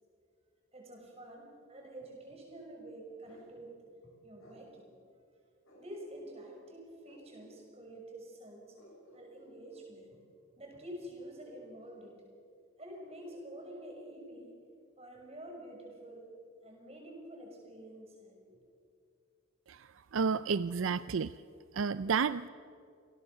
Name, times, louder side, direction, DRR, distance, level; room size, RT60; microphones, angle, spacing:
voice 1, 0.7-3.7 4.0-4.9 5.7-8.8 9.1-10.2 10.5-12.2 12.8-14.6 15.0-16.3 16.6-18.6, right 1 dB, 30° right, 0 dB, 5.9 m, -48 dB
Bark, 3.2-3.5 4.4-4.6 5.6-6.4 7.0-7.6 8.7-9.9 11.2-12.1 12.9-13.8, equal, 80° left, 7.8 m, -59 dB
voice 2, 19.7-21.3 21.7-22.5, right 5 dB, 70° right, 14 dB, 0.5 m, -31 dB
28.0 x 18.5 x 6.8 m, 2.4 s
head